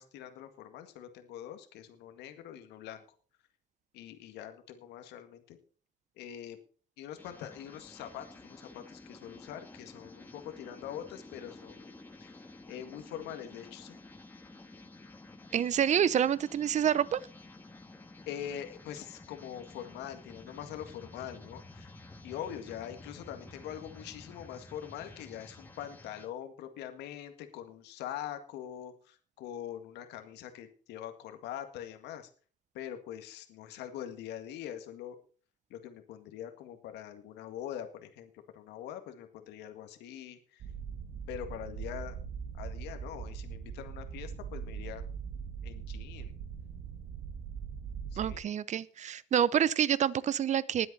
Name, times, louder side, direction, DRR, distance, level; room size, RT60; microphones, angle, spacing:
voice 1, 0.0-3.0 3.9-5.6 6.2-6.6 7.0-11.9 12.2-12.3 12.7-14.0 18.2-21.9 22.2-32.3 32.7-35.2 35.7-40.6 41.3-42.2 42.5-45.0 45.6-46.3 48.1-48.4, left 10 dB, 85° left, 7 dB, 1.8 m, -43 dB
sound 1, 7.2-26.3, left 2 dB, 10° left, 2.0 m, -51 dB
voice 2, 15.5-17.2 48.2-50.9, right 9 dB, 45° right, 19 dB, 0.8 m, -27 dB
sound 2, 40.6-48.4, right 7 dB, 65° right, 1.7 m, -41 dB
20.0 x 8.0 x 4.2 m, 0.41 s
cardioid pair, 110°, 17 cm